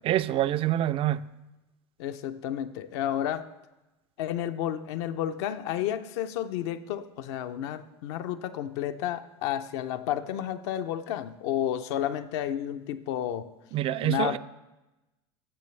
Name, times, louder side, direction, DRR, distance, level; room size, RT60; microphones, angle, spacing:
voice 1, 0.0-1.2 13.7-14.4, right 13 dB, 40° right, 0.3 m, -26 dB
voice 2, 2.0-3.4 4.2-13.5 14.0-14.4, left 11 dB, 75° left, 0.5 m, -31 dB
14.0 x 6.6 x 3.2 m
hypercardioid pair, 90°, 14 cm